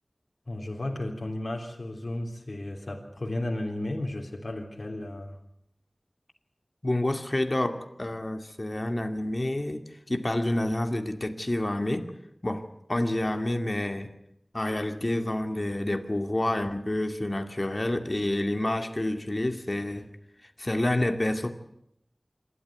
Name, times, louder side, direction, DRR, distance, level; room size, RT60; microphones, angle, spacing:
voice 1, 0.5-5.4, left 1 dB, 65° left, 0 dB, 3.5 m, -34 dB
voice 2, 6.8-12.1 12.4-14.1 14.5-20.1 20.6-21.5, left 1 dB, 40° left, 6 dB, 2.3 m, -28 dB
26.5 x 13.5 x 9.3 m, 0.77 s
wide cardioid pair, 50°, 0 cm